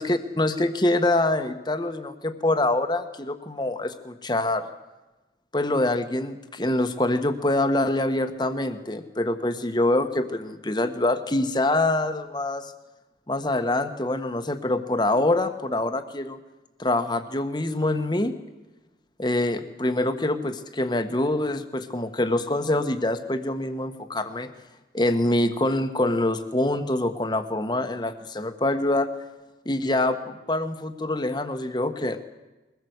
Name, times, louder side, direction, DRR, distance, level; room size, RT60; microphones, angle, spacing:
voice 1, 0.0-4.7 5.5-12.7 13.3-16.4 16.8-18.3 19.2-24.5 24.9-29.1 29.6-32.2, left 1 dB, 25° left, 8 dB, 1.4 m, -25 dB
22.5 x 19.0 x 8.2 m, 1.1 s
head